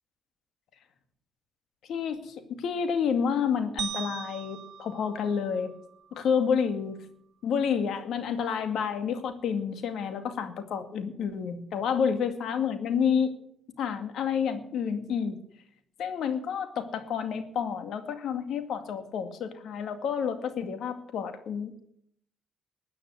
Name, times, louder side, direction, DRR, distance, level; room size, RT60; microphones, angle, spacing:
voice 1, 1.9-5.7 6.1-7.0 7.4-13.3 13.8-15.4 16.0-21.7, left 7 dB, 75° left, 9 dB, 2.1 m, -29 dB
sound 1, 3.8-6.1, right 9 dB, 65° right, 0.7 m, -39 dB
13.5 x 9.4 x 9.5 m, 0.69 s
cardioid pair, 90°, 0 cm